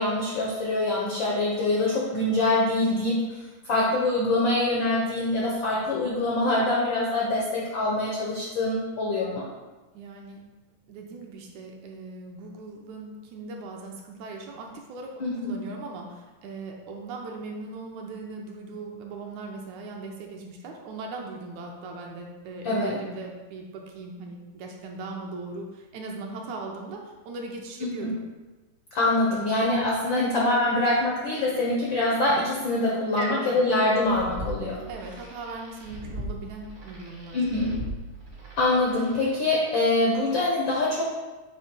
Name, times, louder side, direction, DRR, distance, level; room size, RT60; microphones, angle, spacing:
voice 1, 0.0-9.4 15.2-15.5 22.6-23.0 27.8-28.1 28.9-34.8 37.3-37.8 38.6-41.0, left 2 dB, 85° left, -4 dB, 1.0 m, -24 dB
voice 2, 9.9-10.4 10.9-28.2 33.2-33.7 34.9-37.7, right 3 dB, 75° right, 1 dB, 2.0 m, -39 dB
sound 1, 34.0-39.4, right 1 dB, 50° right, 0.7 m, -40 dB
7.5 x 2.9 x 5.3 m, 1.2 s
omnidirectional pair, 3.6 m